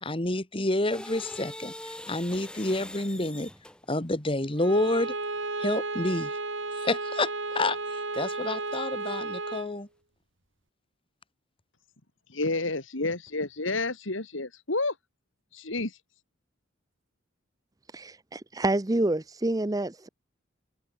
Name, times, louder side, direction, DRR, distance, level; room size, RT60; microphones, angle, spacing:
voice 1, 0.0-1.7 2.1-3.5 3.9-5.1 5.6-6.4 6.7-9.9, left 2 dB, 25° left, 1.8 m, -29 dB
sound 1, 0.9-4.0 7.6-7.8 8.1-9.1, left 1 dB, 5° left, 4.7 m, -43 dB
Bowed string instrument, 4.6-9.8, right 3 dB, 70° right, 5.9 m, -33 dB
voice 2, 12.3-15.0 15.5-16.0, left 2 dB, 75° left, 2.6 m, -30 dB
voice 3, 17.9-20.1, right 2 dB, 20° right, 0.6 m, -28 dB
head